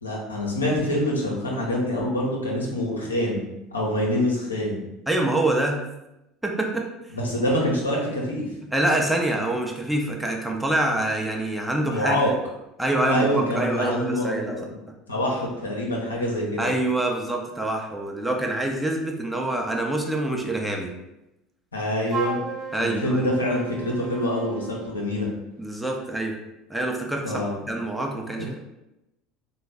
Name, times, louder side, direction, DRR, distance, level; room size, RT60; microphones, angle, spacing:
voice 1, 0.0-4.8 7.1-8.4 11.9-12.3 13.1-14.8 15.1-16.6 21.7-22.4 22.8-25.3 27.2-27.6 28.4-28.5, left 1 dB, 85° left, -2 dB, 0.8 m, -25 dB
voice 2, 5.1-5.8 6.4-6.9 8.7-12.2 12.8-14.6 16.6-20.9 22.7-23.3 25.6-26.4 26.7-27.3 27.7-28.6, right 1 dB, 5° right, 1 dB, 0.7 m, -25 dB
Wind instrument woodwind instrument, 22.1-25.0, right 6 dB, 40° right, 0.4 m, -34 dB
3.9 x 2.2 x 3.5 m, 0.91 s
figure-of-eight pair, 70°, 0 cm